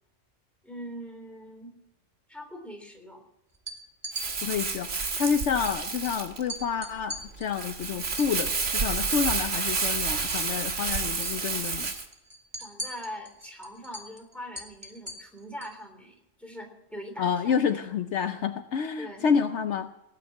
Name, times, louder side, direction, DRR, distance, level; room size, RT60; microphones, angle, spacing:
voice 1, 0.6-1.7 2.3-3.2 12.6-17.8 19.0-19.3, equal, ahead, 2 dB, 3.4 m, -42 dB
sound 1, 3.5-4.3 5.6-5.7 6.0-6.1 6.5-9.3 9.6-10.8 11.0-11.4 11.7-15.8, right 1 dB, 25° right, 2.0 m, -40 dB
Crumpling crinkling, 4.1-12.1, right 4 dB, 70° right, 1.9 m, -30 dB
voice 2, 4.4-11.9 17.2-19.9, left 7 dB, 65° left, 8 dB, 1.0 m, -29 dB
18.0 x 9.6 x 7.4 m, 0.88 s
omnidirectional pair, 1.3 m